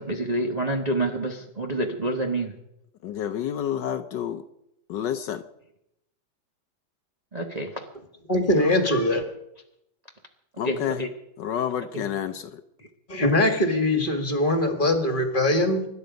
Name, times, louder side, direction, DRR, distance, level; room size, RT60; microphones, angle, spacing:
voice 1, 0.0-2.5 7.3-7.7 10.6-11.1 11.9-12.0, right 1 dB, 25° right, 2 dB, 1.1 m, -27 dB
voice 2, 3.0-4.4 4.9-5.4 10.6-11.1 11.4-12.6, left 9 dB, 70° left, 9 dB, 1.3 m, -29 dB
voice 3, 8.3-9.2 13.1-15.9, left 1 dB, 25° left, 6 dB, 1.9 m, -22 dB
24.5 x 11.0 x 5.2 m, 0.81 s
omnidirectional pair, 2.1 m